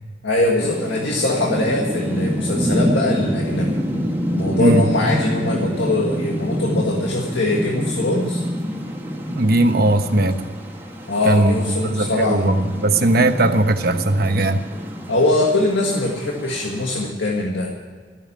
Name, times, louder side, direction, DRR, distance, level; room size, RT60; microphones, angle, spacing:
voice 1, 0.2-3.7 4.3-8.4 11.1-12.6 15.1-17.9, left 2 dB, 85° left, -1 dB, 1.7 m, -22 dB
sound 1, 0.6-17.1, equal, 15° right, 1.7 m, -27 dB
voice 2, 9.3-10.4 11.2-11.6 11.8-14.6, right 2 dB, 60° right, 7 dB, 1.1 m, -18 dB
14.0 x 9.1 x 9.6 m, 1.5 s
head